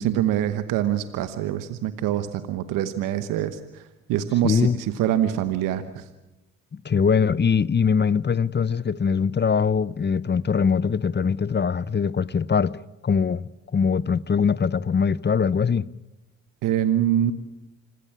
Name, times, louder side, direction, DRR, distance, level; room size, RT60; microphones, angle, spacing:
voice 1, 0.0-3.8 4.1-6.0 16.6-17.3, right 11 dB, 85° right, 1.1 m, -24 dB
voice 2, 4.4-4.8 6.7-15.9, left 6 dB, 35° left, 0.8 m, -22 dB
26.5 x 15.5 x 8.6 m
supercardioid pair, 50°, 32 cm